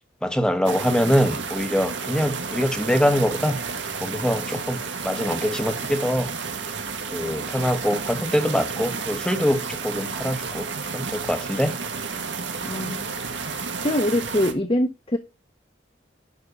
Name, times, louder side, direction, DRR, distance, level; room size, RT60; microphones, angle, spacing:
voice 1, 0.2-3.6 4.0-6.3 7.1-11.8 12.6-12.7, equal, 5° left, 1.2 m, -24 dB
sound 1, 0.6-14.5, right 5 dB, 80° right, 1.8 m, -31 dB
voice 2, 12.6-13.1 13.8-15.2, left 1 dB, 30° left, 1.1 m, -23 dB
11.0 x 3.9 x 6.8 m
head